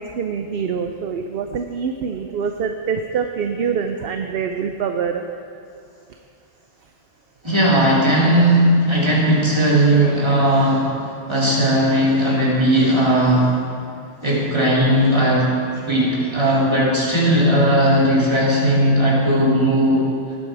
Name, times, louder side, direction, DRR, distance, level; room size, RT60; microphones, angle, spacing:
voice 1, 0.0-5.2, right 6 dB, 65° right, 6 dB, 0.8 m, -25 dB
voice 2, 7.4-13.5 14.2-15.5 15.8-20.0, right 1 dB, 25° right, -6 dB, 3.1 m, -17 dB
19.0 x 8.4 x 4.8 m, 2.5 s
omnidirectional pair, 1.1 m